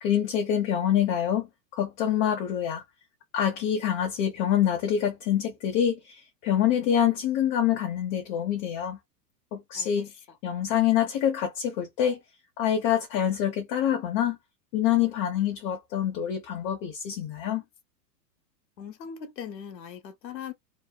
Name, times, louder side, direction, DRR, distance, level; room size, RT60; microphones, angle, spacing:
voice 1, 0.0-2.8 3.3-9.0 9.5-10.1 10.4-12.2 12.6-14.4 14.7-17.6, left 10 dB, 35° left, 0.6 m, -26 dB
voice 2, 18.8-20.5, left 8 dB, 90° left, 1.0 m, -39 dB
2.8 x 2.0 x 2.2 m
hypercardioid pair, 125°, 48 cm